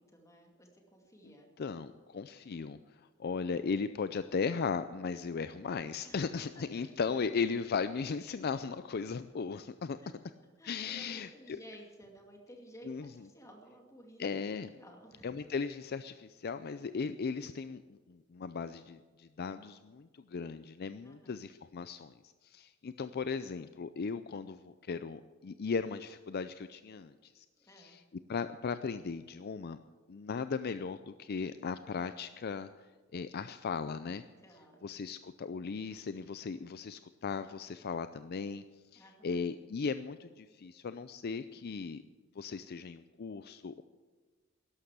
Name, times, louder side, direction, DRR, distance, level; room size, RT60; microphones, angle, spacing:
voice 1, 0.0-1.5 6.0-6.9 10.0-10.1 10.6-14.2 14.7-15.3 21.0-21.4 27.6-28.0 34.4-34.9 38.9-39.4, equal, 15° left, 2 dB, 2.4 m, -55 dB
voice 2, 1.6-10.0 10.6-11.6 12.9-13.0 14.2-14.7 15.2-27.5 27.8-28.0 28.3-29.8 30.1-32.7 33.1-34.2 34.8-38.6 38.9-42.0 42.4-43.8, left 5 dB, 50° left, 12 dB, 0.4 m, -37 dB
12.5 x 11.5 x 8.1 m, 1.4 s
head